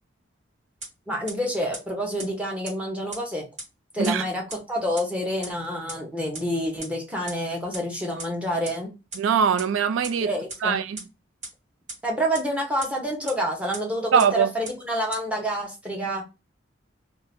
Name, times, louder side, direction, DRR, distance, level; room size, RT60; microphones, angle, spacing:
sound 1, 0.8-0.9 1.3-1.4 1.7-1.8 2.2-2.3 2.6-2.7 3.1-3.2 3.6-3.7 4.0-4.1 4.5-4.6 5.0-5.1 5.4-5.5 5.9-6.0 6.3-6.4 6.8-6.9 7.3-7.4 7.7-7.8 8.2-8.3 8.6-8.7 9.1-9.2 9.6-9.7 10.0-10.1 10.5-10.6 11.0-11.1 11.4-11.5 11.9-12.0 12.3-12.4 12.8-12.9 13.3-13.4 13.7-13.8 14.2-14.3 14.6-14.7 15.1-15.2, right 2 dB, 40° right, 1.4 m, -35 dB
voice 1, 1.1-3.4 3.9-4.4 4.7-8.9 10.2-10.8 12.0-16.2, equal, 5° right, 0.8 m, -28 dB
voice 2, 9.1-10.3 10.6-11.0 14.1-14.5, right 7 dB, 90° right, 0.4 m, -22 dB
2.6 x 2.4 x 3.4 m
head